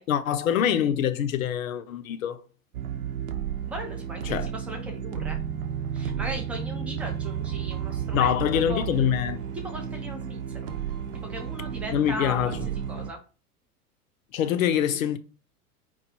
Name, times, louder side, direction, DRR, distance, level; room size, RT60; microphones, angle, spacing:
voice 1, 0.1-2.4 4.3-4.5 8.1-9.4 11.9-12.6 14.3-15.2, left 9 dB, 60° left, 0.7 m, -25 dB
sound 1, 2.7-13.1, right 8 dB, 60° right, 0.8 m, -32 dB
voice 2, 3.7-5.4 5.9-8.4 8.7-8.8 9.6-10.7 11.3-12.4 12.7-13.2, equal, 5° right, 0.3 m, -37 dB
4.6 x 2.3 x 4.1 m
figure-of-eight pair, 90°, 46 cm